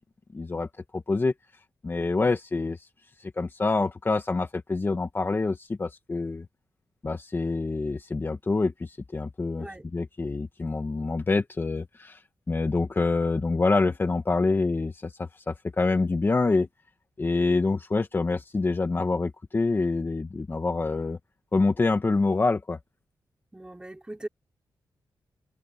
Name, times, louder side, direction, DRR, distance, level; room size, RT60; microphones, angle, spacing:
voice 1, 0.3-0.7 0.9-1.3 1.8-2.8 3.2-6.5 7.0-9.7 9.9-12.2 12.5-16.7 17.2-21.2 21.5-22.8, left 3 dB, 30° left, 1.8 m, -26 dB
voice 2, 23.5-24.3, right 1 dB, 10° right, 3.4 m, -39 dB
cardioid pair, 105°, 8 cm